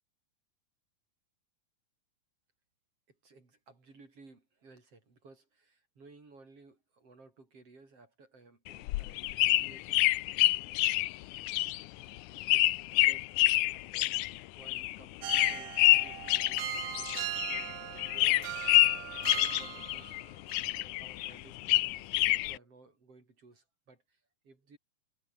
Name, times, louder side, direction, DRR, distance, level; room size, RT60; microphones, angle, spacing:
voice 1, 3.1-10.4 12.3-13.3 13.7-14.2 14.5-18.7 19.2-20.2 20.8-24.8, right 3 dB, 45° right, 6.0 m, -58 dB
sound 1, 8.7-17.7 18.0-20.2 20.5-22.6, left 18 dB, 75° left, 1.9 m, -27 dB
sound 2, 15.2-20.2 20.5-20.7, right 14 dB, 70° right, 2.0 m, -40 dB
omnidirectional pair, 3.9 m